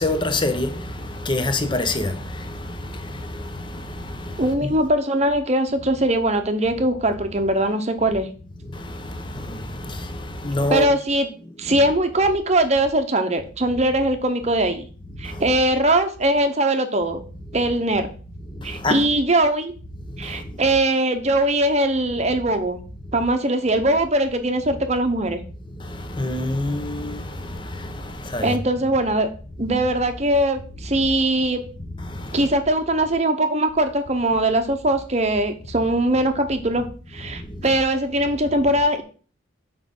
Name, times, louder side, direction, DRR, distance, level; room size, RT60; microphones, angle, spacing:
voice 1, 0.0-4.7 8.6-10.9 11.6-11.8 15.2-15.5 18.5-19.1 20.1-20.7 23.0-23.2 25.6-28.6 30.9-31.1 32.0-32.5 37.2-37.8, left 2 dB, 25° left, 0.8 m, -28 dB
voice 2, 4.4-8.3 10.7-11.3 11.6-14.9 15.2-17.2 17.5-18.1 18.6-19.7 20.2-22.8 23.1-25.4 28.4-29.3 29.6-31.6 32.3-36.8 37.1-39.0, right 1 dB, 35° right, 0.9 m, -21 dB
7.2 x 5.1 x 5.4 m
head